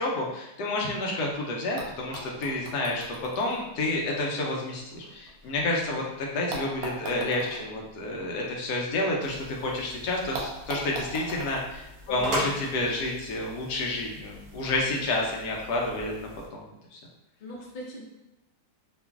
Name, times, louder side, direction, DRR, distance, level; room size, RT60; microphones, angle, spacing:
voice 1, 0.0-16.6 16.9-17.0, left 2 dB, 80° left, -2 dB, 1.2 m, -30 dB
sound 1, 1.3-1.4 1.8-5.9 6.5-9.5 9.7-9.8 10.3-12.7 13.7-13.8, right 2 dB, 70° right, 1.0 m, -41 dB
sound 2, 9.2-16.5, equal, 50° right, 0.6 m, -39 dB
voice 2, 12.1-12.5 17.4-18.0, right 1 dB, 55° left, -4 dB, 0.6 m, -40 dB
2.9 x 2.4 x 2.3 m, 0.96 s
omnidirectional pair, 1.7 m